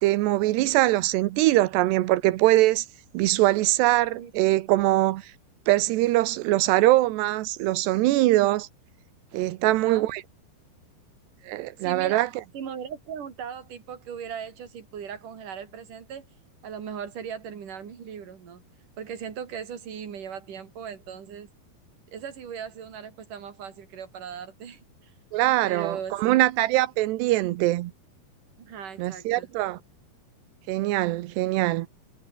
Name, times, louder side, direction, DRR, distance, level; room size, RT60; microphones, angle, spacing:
voice 1, 0.0-2.9 3.1-5.3 5.7-8.7 9.3-10.2 11.5-12.3 25.3-27.9 29.0-29.8 30.7-31.9, right 17 dB, 85° right, 3.1 m, -22 dB
voice 2, 9.7-10.1 11.8-12.3 12.5-16.3 16.6-18.6 19.0-21.5 22.1-25.1 25.6-26.4 28.6-29.5, right 7 dB, 50° right, 4.7 m, -38 dB
omnidirectional pair, 4.8 m